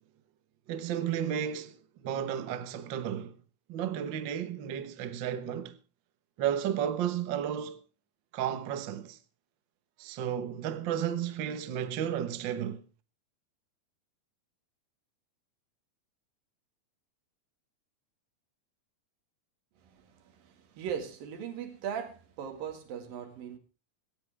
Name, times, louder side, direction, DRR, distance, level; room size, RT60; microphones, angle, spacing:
voice 1, 0.7-3.4 3.7-5.8 6.4-7.8 8.3-9.2 10.0-12.8, right 9 dB, 65° right, 1.1 m, -33 dB
voice 2, 19.8-23.6, right 8 dB, 90° right, 3.8 m, -39 dB
17.5 x 15.5 x 3.5 m
omnidirectional pair, 3.9 m